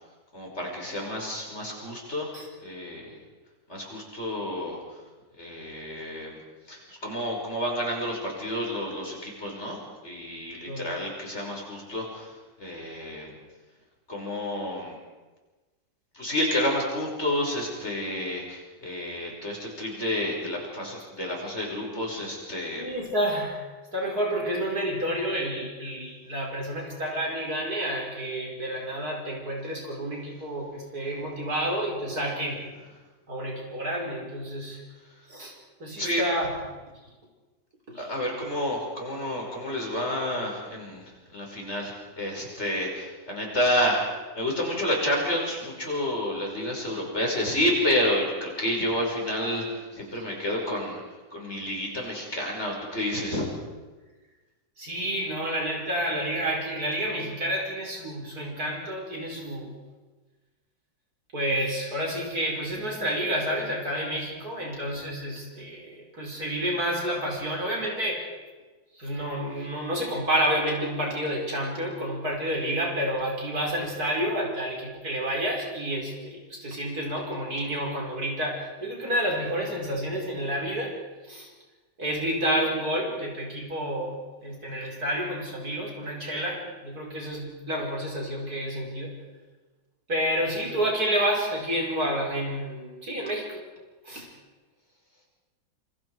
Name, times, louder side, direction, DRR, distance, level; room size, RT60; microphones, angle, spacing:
voice 1, 0.3-2.3 2.6-3.2 3.7-5.0 5.4-6.4 6.7-12.3 12.6-13.3 14.1-15.0 16.1-22.8 35.9-36.2 37.9-41.0 41.3-51.0 51.3-53.5, left 1 dB, 35° left, -1 dB, 6.0 m, -30 dB
voice 2, 22.8-23.7 23.9-32.6 33.3-34.8 35.3-35.5 35.8-36.5 37.9-38.1 54.8-59.7 61.3-68.3 69.0-80.9 81.3-81.5 82.0-89.1 90.1-93.6 94.0-94.3, equal, 50° right, -1 dB, 5.8 m, -29 dB
27.5 x 26.5 x 4.9 m, 1.2 s
omnidirectional pair, 2.0 m